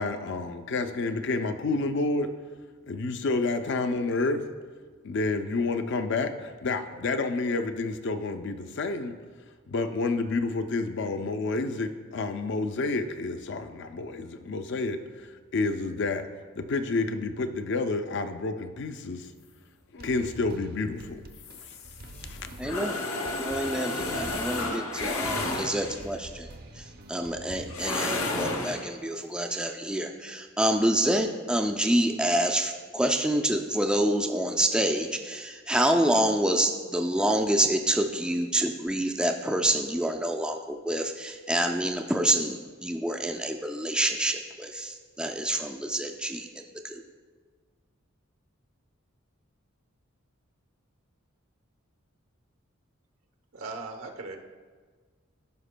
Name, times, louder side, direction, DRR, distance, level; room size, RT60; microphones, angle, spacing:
voice 1, 0.0-2.3 2.9-4.4 5.0-9.2 9.7-16.3 16.6-19.3 19.9-21.2 21.6-21.7 22.2-22.6, left 3 dB, 60° left, 8 dB, 0.5 m, -29 dB
sound 1, 20.0-27.9, right 1 dB, 45° right, 0.6 m, -46 dB
sound 2, 21.3-26.2 27.7-28.9, left 2 dB, 80° left, 0.8 m, -32 dB
voice 2, 22.6-23.0 23.4-26.5 26.8-47.0, right 1 dB, 5° right, 4 dB, 0.3 m, -27 dB
voice 3, 53.5-54.4, right 3 dB, 80° right, 4 dB, 0.9 m, -38 dB
14.5 x 5.1 x 2.2 m, 1.5 s
head